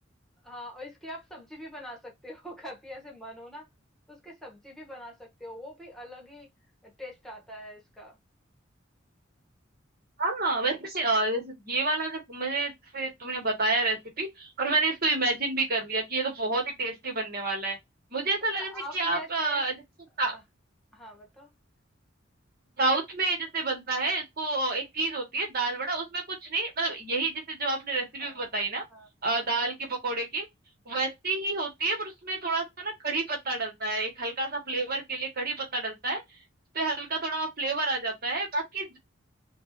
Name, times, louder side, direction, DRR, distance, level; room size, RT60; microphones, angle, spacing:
voice 1, 0.4-3.7 4.1-6.5 6.8-8.2 18.5-19.6 20.3-20.4 20.9-21.5 28.2-28.4 28.9-29.5, equal, ahead, 1.3 m, -43 dB
voice 2, 10.2-17.8 18.1-18.7 18.9-19.8 20.2-20.4 22.8-28.8 29.2-30.5 30.8-36.2 36.7-39.0, right 3 dB, 50° right, 1.6 m, -29 dB
5.7 x 2.5 x 2.7 m
head